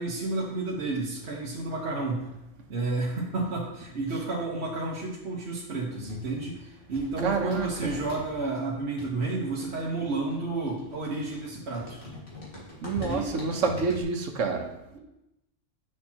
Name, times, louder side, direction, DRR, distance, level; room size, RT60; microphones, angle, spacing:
voice 1, 0.0-2.3 2.7-12.0 13.0-13.3, right 3 dB, 60° right, -4 dB, 1.3 m, -31 dB
sound 1, 5.9-14.0, left 2 dB, 45° left, 2.2 m, -44 dB
voice 2, 7.2-8.0 12.8-14.7, right 4 dB, 90° right, 4 dB, 1.2 m, -28 dB
7.4 x 6.7 x 2.9 m, 0.90 s
omnidirectional pair, 1.2 m